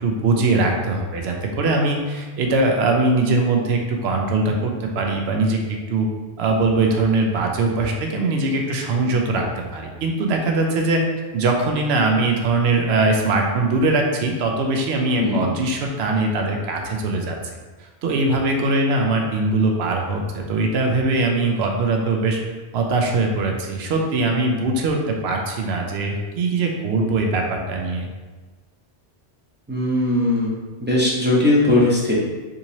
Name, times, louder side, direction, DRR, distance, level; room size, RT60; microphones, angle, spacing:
voice 1, 0.0-6.1 6.4-11.0 11.3-17.4 17.8-22.4 22.7-28.1, right 3 dB, 75° right, 2 dB, 0.8 m, -21 dB
voice 2, 29.7-30.5 30.8-32.1, left 2 dB, 10° right, -7 dB, 0.6 m, -19 dB
3.7 x 2.9 x 2.7 m, 1.3 s
omnidirectional pair, 1.1 m